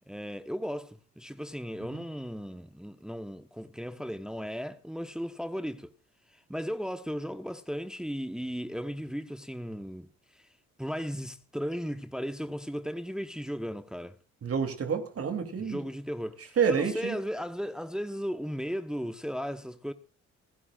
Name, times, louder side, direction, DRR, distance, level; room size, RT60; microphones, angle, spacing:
voice 1, 0.1-5.9 6.3-10.1 10.3-10.5 10.8-14.1 15.6-19.9, equal, ahead, 1.0 m, -36 dB
voice 2, 14.4-15.8 16.6-17.2, right 6 dB, 50° right, 2.9 m, -28 dB
29.0 x 11.0 x 2.4 m
cardioid pair, 90°, 30 cm